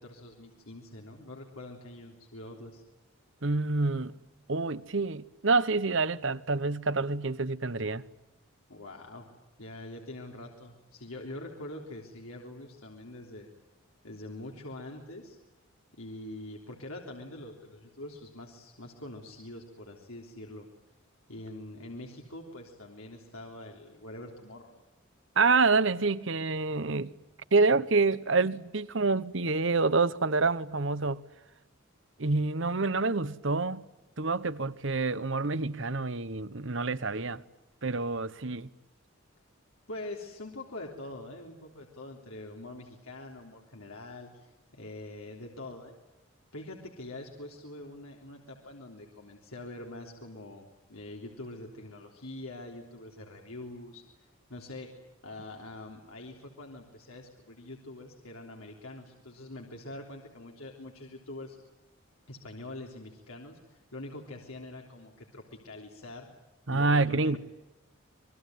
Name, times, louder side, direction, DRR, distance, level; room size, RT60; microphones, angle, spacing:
voice 1, 0.0-2.8 8.7-9.3 9.6-13.5 14.0-15.4 16.0-20.7 21.3-24.7 39.9-45.9 46.5-61.6 62.3-66.3 66.7-67.4, left 1 dB, 85° left, 3.5 m, -44 dB
voice 2, 3.4-4.1 4.5-8.0 25.4-27.1 27.5-31.2 32.2-33.8 34.2-37.4 37.8-38.7 66.7-67.4, right 3 dB, 60° right, 1.1 m, -27 dB
27.5 x 22.0 x 9.3 m
head